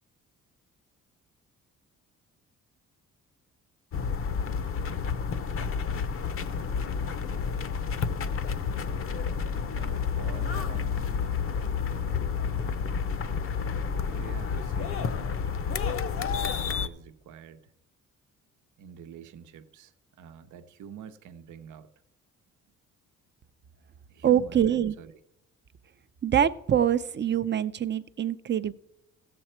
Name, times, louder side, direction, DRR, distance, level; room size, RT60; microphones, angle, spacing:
sound 1, 3.9-16.9, left 6 dB, 45° left, 0.8 m, -30 dB
voice 1, 9.7-11.3 14.1-15.3 15.7-17.7 18.8-19.9 20.2-21.9 24.1-25.1, right 8 dB, 80° right, 0.9 m, -47 dB
voice 2, 24.2-24.9 26.2-28.7, right 9 dB, 35° right, 0.6 m, -24 dB
15.5 x 7.8 x 4.4 m
cardioid pair, 90°, 30 cm